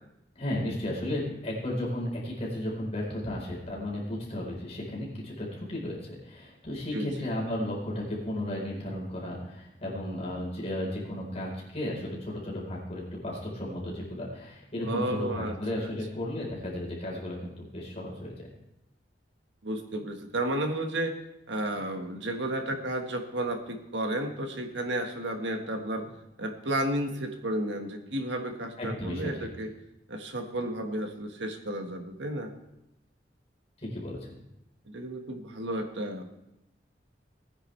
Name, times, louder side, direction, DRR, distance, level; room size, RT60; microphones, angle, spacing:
voice 1, 0.3-18.5 28.8-29.5 33.8-34.4, left 1 dB, 35° left, -4 dB, 4.2 m, -34 dB
voice 2, 6.9-7.3 14.8-15.9 19.6-21.1 21.5-26.1 26.4-29.7 30.1-32.5 34.9-36.3, right 1 dB, 85° right, 4 dB, 1.6 m, -32 dB
19.0 x 9.8 x 3.3 m, 0.86 s
head